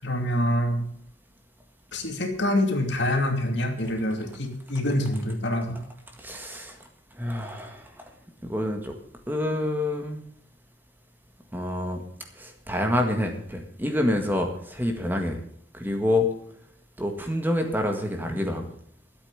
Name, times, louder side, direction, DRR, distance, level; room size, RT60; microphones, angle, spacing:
voice 1, 0.0-0.9 1.9-5.8, left 1 dB, 65° left, 4 dB, 2.6 m, -26 dB
voice 2, 6.2-6.8 7.2-7.9 8.5-8.9 9.3-10.2 11.5-12.0 12.4-15.4 15.7-16.3 17.0-18.7, left 1 dB, 10° right, 4 dB, 1.7 m, -27 dB
13.5 x 8.4 x 7.0 m, 0.65 s
head